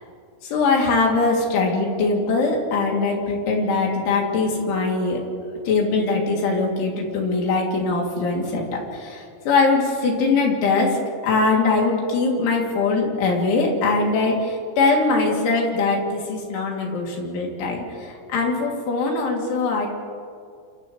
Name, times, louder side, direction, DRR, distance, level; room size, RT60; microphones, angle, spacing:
voice 1, 0.4-5.2 5.7-11.0 11.2-19.9, left 3 dB, 80° left, -1 dB, 5.4 m, -22 dB
28.0 x 28.0 x 3.3 m, 2.2 s
omnidirectional pair, 5.4 m